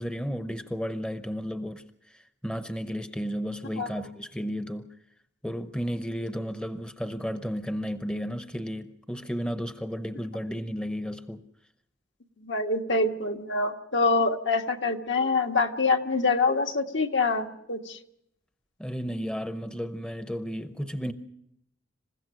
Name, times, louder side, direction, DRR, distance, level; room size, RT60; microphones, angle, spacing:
voice 1, 0.0-1.8 2.4-4.9 5.4-11.4 18.8-21.1, equal, 5° left, 0.7 m, -33 dB
voice 2, 12.4-18.0, left 3 dB, 70° left, 1.5 m, -25 dB
27.5 x 15.5 x 6.2 m
head